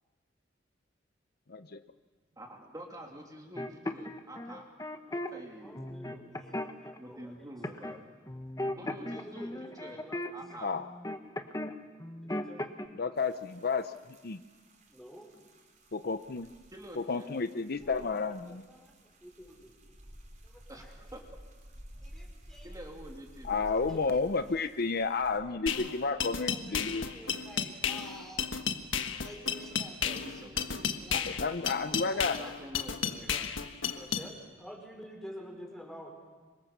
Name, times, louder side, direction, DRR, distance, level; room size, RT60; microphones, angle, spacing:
voice 1, 1.5-1.8 10.6-10.8 13.0-13.9 14.2-14.4 15.9-16.5 17.0-18.7 23.4-27.1 31.1-32.4, left 4 dB, 55° left, 10 dB, 0.7 m, -31 dB
voice 2, 2.3-4.7 5.3-6.0 7.0-8.1 8.7-10.0 10.3-10.7 16.7-17.3 20.7-21.2 22.6-24.1 24.4-24.5 29.7-31.2 32.4-33.5, right 1 dB, 20° right, 1 dB, 3.0 m, -48 dB
sound 1, 3.6-5.3 5.7-7.0 7.6-8.0 8.3-11.7 12.0-12.9, left 1 dB, 20° left, 1.3 m, -37 dB
voice 3, 5.1-7.3 7.8-7.9 8.8-10.3 12.2-12.8 14.9-15.3 17.8-18.9 19.2-19.7 20.4-20.9 22.0-22.8 23.9-24.6 26.5-28.6 29.2-31.3 31.9-32.5 32.8-33.3 33.9-36.1, equal, ahead, 1 dB, 5.2 m, -50 dB
sound 2, 13.2-25.4, equal, 40° right, 4.4 m, -53 dB
sound 3, 25.7-34.3, left 7 dB, 90° left, 1.5 m, -33 dB
26.5 x 24.5 x 7.3 m, 1.4 s
head